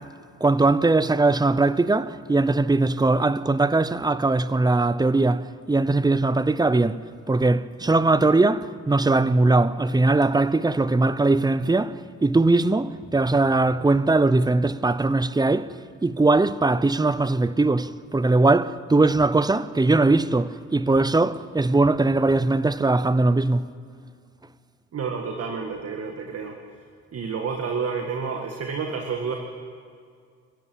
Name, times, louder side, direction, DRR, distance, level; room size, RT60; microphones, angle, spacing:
voice 1, 0.4-23.7, right 2 dB, 15° right, 0.7 m, -20 dB
voice 2, 24.9-26.6 27.1-29.4, right 5 dB, 50° right, 1.8 m, -29 dB
24.5 x 15.0 x 8.5 m
cardioid pair, 90°, 30 cm